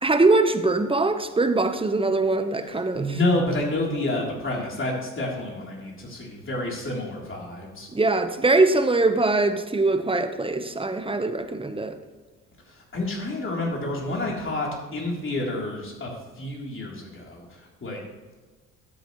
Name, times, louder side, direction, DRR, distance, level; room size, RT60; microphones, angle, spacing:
voice 1, 0.0-3.1 7.9-11.9, right 2 dB, 15° right, 8 dB, 1.0 m, -22 dB
voice 2, 2.6-7.9 12.7-18.0, left 1 dB, 40° left, -2 dB, 3.5 m, -29 dB
12.5 x 8.2 x 3.2 m, 1.3 s
supercardioid pair, 65°, 33 cm